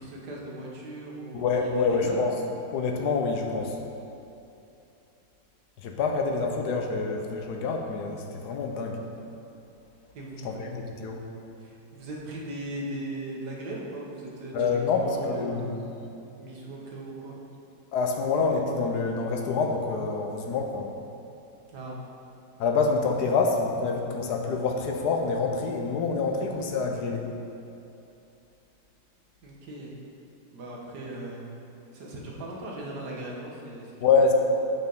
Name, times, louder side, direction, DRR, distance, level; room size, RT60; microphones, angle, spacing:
voice 1, 0.0-2.2 10.1-10.6 11.6-15.8 16.4-17.3 21.7-22.0 29.4-29.9 30.5-31.5 31.9-33.9, right 1 dB, 60° right, -3 dB, 1.7 m, -38 dB
voice 2, 1.3-2.4 2.7-3.8 5.8-9.0 10.4-11.2 14.5-15.8 17.9-20.9 22.6-27.3 34.0-34.3, left 4 dB, 65° left, 2 dB, 1.1 m, -26 dB
7.0 x 6.2 x 5.3 m, 2.7 s
omnidirectional pair, 2.2 m